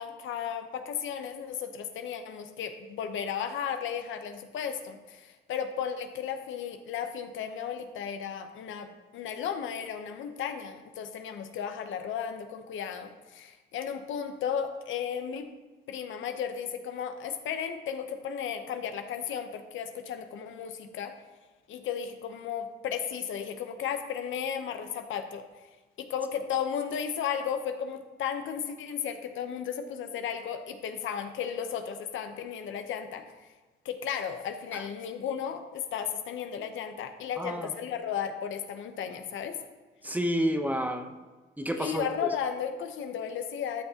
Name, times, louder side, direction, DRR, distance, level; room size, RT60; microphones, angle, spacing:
voice 1, 0.0-15.5 15.9-21.1 21.7-25.4 26.0-33.2 33.8-39.5 41.8-43.8, left 8 dB, 75° left, 7 dB, 0.8 m, -34 dB
voice 2, 37.4-37.7 40.0-41.2 41.6-42.0, equal, 10° right, 6 dB, 0.8 m, -29 dB
13.0 x 5.6 x 2.9 m, 1.3 s
cardioid pair, 90°, 20 cm